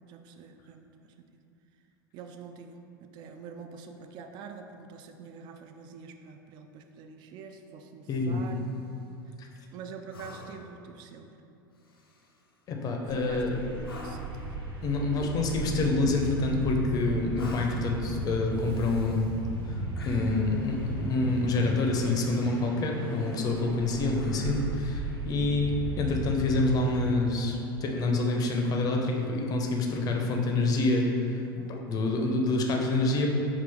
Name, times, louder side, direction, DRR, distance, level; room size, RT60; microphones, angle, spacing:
voice 1, 0.1-1.3 2.1-8.7 9.7-11.3 13.1-14.5 31.5-32.1, right 5 dB, 40° right, 6 dB, 0.3 m, -46 dB
voice 2, 8.1-8.4 9.4-9.5 12.7-13.6 14.8-19.3 20.1-25.7 26.0-31.1 31.7-33.3, left 2 dB, 30° left, 1 dB, 0.6 m, -27 dB
sound 1, 8.2-8.9 10.1-10.8 11.8-12.5 13.8-14.4 15.9-16.7 17.3-17.9 18.5-19.4 20.0-20.6 22.0-22.5 23.0-23.6 24.1-24.9 26.7-26.8, left 2 dB, 80° left, 0.5 m, -49 dB
sound 2, 13.1-27.0, right 2 dB, 85° right, 1.2 m, -36 dB
5.4 x 2.5 x 3.4 m, 2.7 s
figure-of-eight pair, 80°, 12 cm